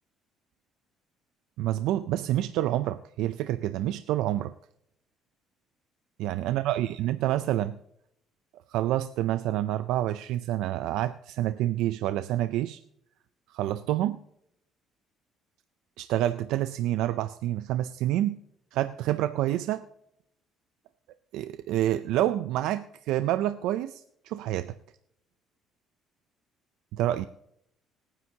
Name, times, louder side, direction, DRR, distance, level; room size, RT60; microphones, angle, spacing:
voice 1, 1.6-4.5 6.2-7.8 8.7-12.8 13.5-14.2 16.0-18.4 18.7-19.9 21.3-24.7 26.9-27.3, right 13 dB, 75° right, 11 dB, 0.4 m, -28 dB
26.0 x 9.8 x 2.8 m, 0.77 s
cardioid pair, 175°, 0 cm